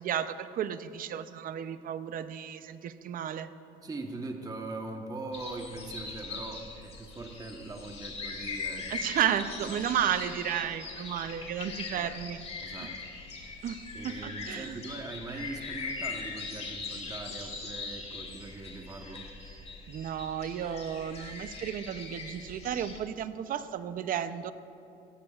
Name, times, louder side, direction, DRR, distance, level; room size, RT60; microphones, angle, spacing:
voice 1, 0.0-3.5 8.9-12.4 12.8-12.9 13.6-13.8 14.0-14.8 19.9-24.5, right 9 dB, 55° right, 12 dB, 0.6 m, -33 dB
voice 2, 3.8-9.1 9.7-10.0 11.9-12.1 12.6-13.0 13.9-19.3, right 2 dB, 20° right, 3 dB, 1.1 m, -41 dB
sound 1, 5.3-23.0, left 4 dB, 40° left, 2.1 m, -41 dB
17.5 x 14.0 x 2.4 m, 2.9 s
cardioid pair, 110°, 17 cm